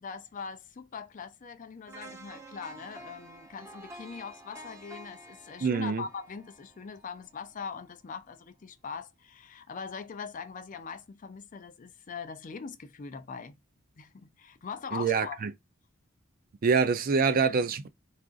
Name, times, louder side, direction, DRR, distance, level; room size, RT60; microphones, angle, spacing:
voice 1, 0.0-13.5 14.0-15.4, left 5 dB, 40° left, 0.4 m, -41 dB
sound 1, 1.9-7.9 8.3-8.4, right 1 dB, 15° right, 0.8 m, -50 dB
voice 2, 5.6-6.0 14.9-15.5 16.6-17.9, right 5 dB, 45° right, 0.4 m, -25 dB
4.7 x 2.5 x 2.4 m
head